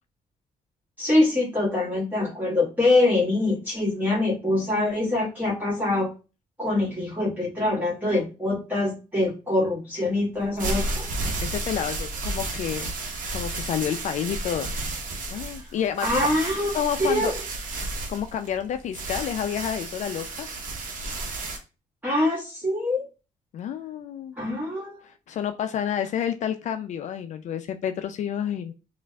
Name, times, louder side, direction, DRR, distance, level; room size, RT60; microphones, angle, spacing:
voice 1, 1.0-6.1 6.6-11.0 16.0-16.7 17.0-17.3 22.0-23.1 24.4-25.0, left 2 dB, 15° right, -7 dB, 1.5 m, -24 dB
sound 1, 10.4-21.6, right 2 dB, 70° right, 1.0 m, -32 dB
voice 2, 11.4-12.9 13.3-14.7 15.3-16.1 16.7-17.3 18.1-20.5 23.5-24.4 25.0-28.7, left 9 dB, 60° left, 8 dB, 0.4 m, -29 dB
4.9 x 2.5 x 2.3 m, 0.31 s
cardioid pair, 95°, 14 cm